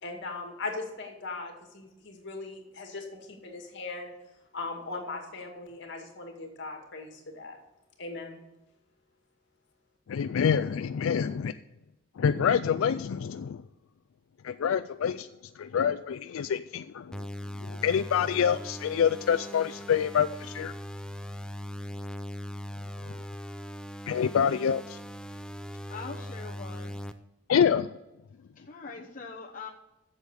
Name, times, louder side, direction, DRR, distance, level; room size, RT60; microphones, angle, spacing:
voice 1, 0.0-4.1 4.5-7.6 8.0-8.4, left 3 dB, 60° left, 2 dB, 2.2 m, -39 dB
voice 2, 10.1-11.5 12.2-13.6 14.4-15.3 15.6-17.2 17.6-20.7 23.1-23.2 24.1-25.0 27.5-28.0, left 7 dB, 90° left, 10 dB, 0.4 m, -26 dB
sound 1, 17.1-27.1, equal, 5° left, 0.5 m, -40 dB
voice 3, 25.9-27.0 28.5-29.7, left 4 dB, 40° left, -1 dB, 1.0 m, -42 dB
8.1 x 7.3 x 8.3 m, 0.95 s
head